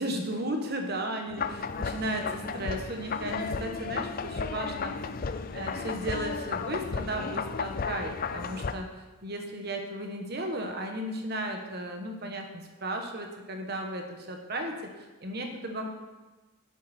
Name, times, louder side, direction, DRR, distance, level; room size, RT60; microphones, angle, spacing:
voice 1, 0.0-4.9 5.5-15.9, right 1 dB, 45° right, 3 dB, 1.4 m, -35 dB
sound 1, 1.4-8.7, left 5 dB, 40° left, 0.4 m, -34 dB
sound 2, 2.5-10.1, left 1 dB, 25° right, 3.9 m, -55 dB
11.0 x 8.5 x 4.4 m, 1.2 s
head